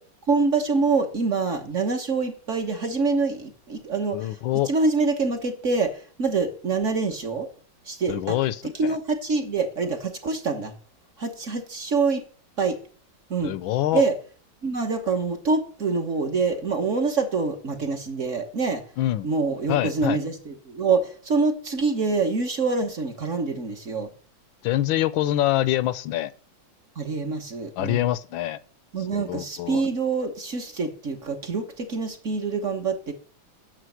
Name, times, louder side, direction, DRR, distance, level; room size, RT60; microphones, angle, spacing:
voice 1, 0.3-4.4 4.6-7.5 7.8-8.4 8.6-10.7 11.2-12.2 12.6-12.8 13.3-13.5 13.9-14.1 14.6-18.8 19.2-24.1 26.9-28.1 28.9-33.1, right 4 dB, 45° right, 1.4 m, -25 dB
voice 2, 4.1-4.7 8.1-8.5 8.8-9.0 13.4-14.1 19.0-19.3 19.7-20.2 24.6-26.3 27.8-28.6 29.1-29.9, left 14 dB, 80° left, 1.4 m, -25 dB
9.4 x 6.6 x 7.7 m
omnidirectional pair, 2.1 m